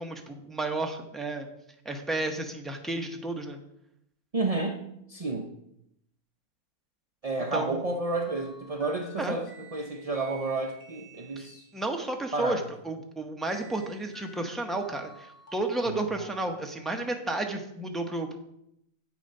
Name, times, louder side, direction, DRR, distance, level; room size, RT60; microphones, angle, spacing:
voice 1, 0.0-1.5 1.8-3.6 7.5-7.8 9.2-9.4 11.4-11.5 11.7-18.4, right 2 dB, ahead, 3 dB, 0.7 m, -32 dB
voice 2, 4.3-5.5 7.2-11.6 12.3-12.6 15.9-16.0, right 3 dB, 60° right, 3 dB, 0.3 m, -31 dB
sound 1, 8.1-11.9 13.5-17.2, right 1 dB, 65° left, 2.4 m, -52 dB
8.2 x 7.1 x 5.4 m, 0.79 s
omnidirectional pair, 1.6 m